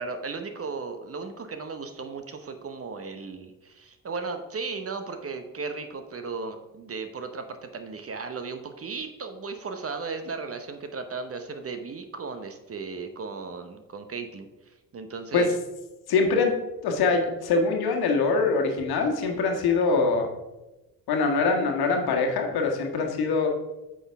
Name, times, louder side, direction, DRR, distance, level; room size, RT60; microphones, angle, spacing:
voice 1, 0.0-15.5, right 4 dB, 30° right, 7 dB, 1.0 m, -36 dB
voice 2, 16.1-16.5 16.8-20.3 21.1-23.5, left 4 dB, 55° left, 2 dB, 1.6 m, -23 dB
9.2 x 6.2 x 3.5 m, 1.0 s
figure-of-eight pair, 45°, 44 cm